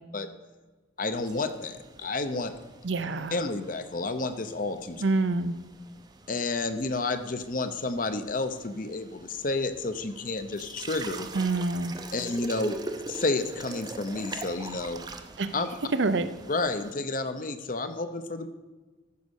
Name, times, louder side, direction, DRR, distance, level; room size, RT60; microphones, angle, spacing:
voice 1, 1.0-2.5 3.3-5.0 6.3-11.3 12.1-12.8 13.1-15.0 15.5-15.7 16.5-18.5, left 3 dB, 45° left, 10 dB, 0.7 m, -30 dB
sound 1, 1.1-16.9, right 3 dB, 20° right, 0.6 m, -43 dB
voice 2, 2.8-3.4 5.0-5.5 11.3-11.9 15.4-15.5 15.9-16.3, right 3 dB, 75° right, 12 dB, 0.6 m, -26 dB
14.0 x 5.3 x 6.4 m, 1.3 s
head